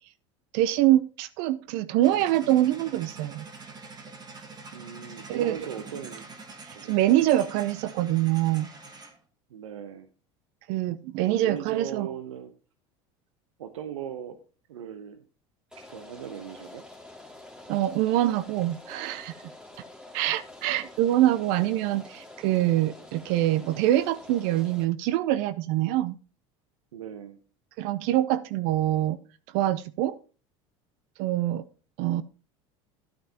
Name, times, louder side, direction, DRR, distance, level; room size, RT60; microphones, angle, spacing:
voice 1, 0.5-3.5 5.3-5.6 6.6-8.7 10.7-12.1 17.7-19.4 20.1-26.2 27.8-29.2 29.5-30.2 31.2-31.6 32.0-32.2, right 14 dB, 65° right, 16 dB, 0.6 m, -25 dB
sound 1, 2.0-9.2, right 3 dB, 25° right, 1.7 m, -45 dB
voice 2, 4.7-6.3 6.7-7.2 9.5-10.1 11.4-12.5 13.6-14.4 14.7-15.2 15.8-16.8 26.9-27.4, right 9 dB, 90° right, 10 dB, 0.8 m, -39 dB
Rain, 15.7-24.8, left 2 dB, 5° right, 2.2 m, -47 dB
11.5 x 9.2 x 2.9 m, 0.35 s
hypercardioid pair, 85°, 16 cm